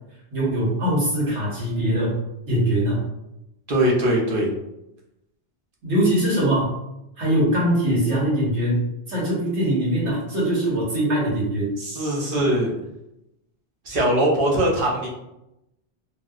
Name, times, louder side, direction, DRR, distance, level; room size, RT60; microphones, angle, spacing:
voice 1, 0.3-2.1 2.5-3.0 5.8-6.7 7.2-11.7, right 1 dB, 85° right, -6 dB, 1.5 m, -22 dB
voice 2, 3.7-4.5 11.8-12.7 13.8-15.1, right 1 dB, 55° right, -3 dB, 0.9 m, -21 dB
2.9 x 2.8 x 2.4 m, 0.88 s
omnidirectional pair, 1.1 m